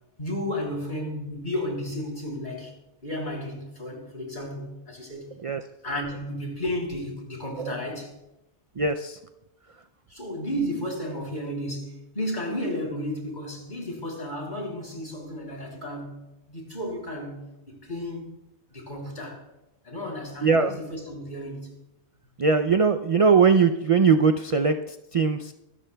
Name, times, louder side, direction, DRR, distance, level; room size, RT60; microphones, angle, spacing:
voice 1, 0.2-2.7 3.0-5.3 5.8-8.1 10.1-18.3 18.7-19.4 19.8-21.7, left 1 dB, 45° left, -1 dB, 3.5 m, -33 dB
voice 2, 8.8-9.2 20.4-20.7 22.4-25.5, right 5 dB, 50° right, 8 dB, 0.4 m, -21 dB
25.0 x 12.5 x 2.2 m, 0.93 s
omnidirectional pair, 1.1 m